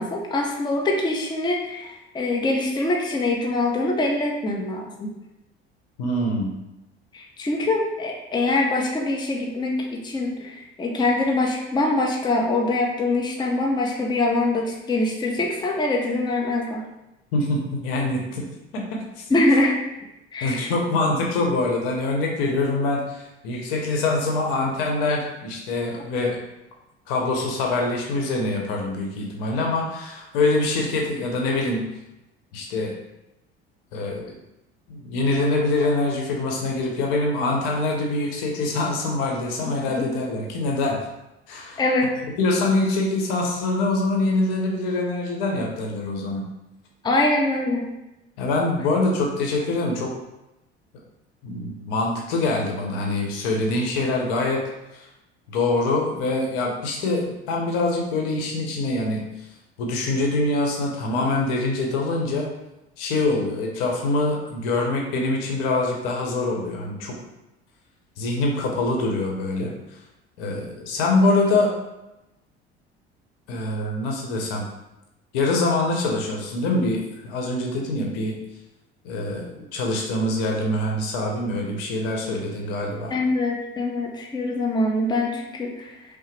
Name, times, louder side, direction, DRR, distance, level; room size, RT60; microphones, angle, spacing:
voice 1, 0.0-5.1 7.1-16.8 19.3-19.8 20.3-20.7 40.0-40.1 41.8-42.2 47.0-47.9 83.1-86.0, left 2 dB, 15° left, 0 dB, 0.6 m, -24 dB
voice 2, 6.0-6.6 17.3-18.5 18.7-19.0 20.4-26.4 27.1-31.8 32.5-32.9 33.9-34.3 34.9-41.0 41.5-41.8 42.4-46.4 48.4-50.1 51.4-54.6 54.9-55.1 55.5-59.5 59.8-62.5 63.0-67.2 68.2-69.7 70.4-71.7 73.5-74.7 75.3-78.4 79.0-83.2, left 2 dB, 60° left, 0 dB, 0.9 m, -24 dB
5.5 x 2.0 x 3.2 m, 0.94 s
figure-of-eight pair, 60°, 32 cm